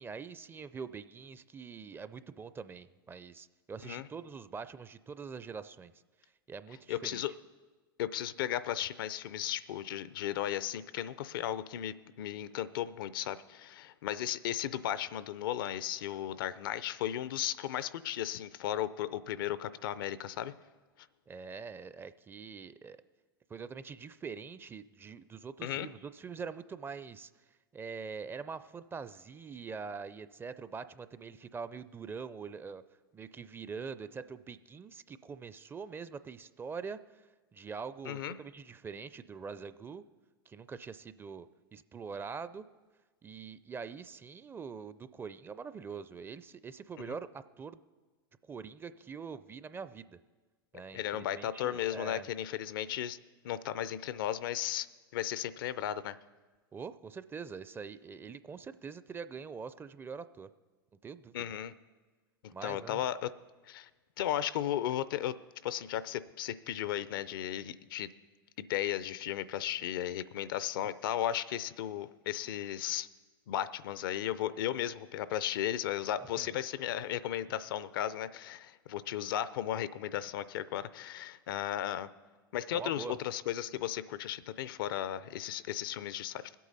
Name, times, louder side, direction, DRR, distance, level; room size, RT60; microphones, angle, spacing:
voice 1, 0.0-5.9 6.2-7.3 21.3-23.0 23.5-27.3 27.7-32.8 33.1-37.2 37.5-40.0 40.5-41.5 41.7-42.6 43.2-47.8 48.4-50.2 50.7-52.3 56.7-60.5 61.0-61.4 62.5-63.0 76.4-76.5 82.7-83.2, right 5 dB, 20° right, 14 dB, 0.4 m, -44 dB
voice 2, 6.9-7.3 8.0-20.5 25.6-25.9 38.1-38.4 47.0-47.1 50.9-53.2 53.4-54.9 55.1-56.2 61.3-61.7 62.6-63.3 63.7-63.9 64.2-65.4 65.6-68.1 68.6-73.1 73.5-82.1 82.5-86.5, left 11 dB, 70° left, 16 dB, 0.5 m, -35 dB
21.0 x 8.4 x 4.1 m, 1.3 s
hypercardioid pair, 95°, 12 cm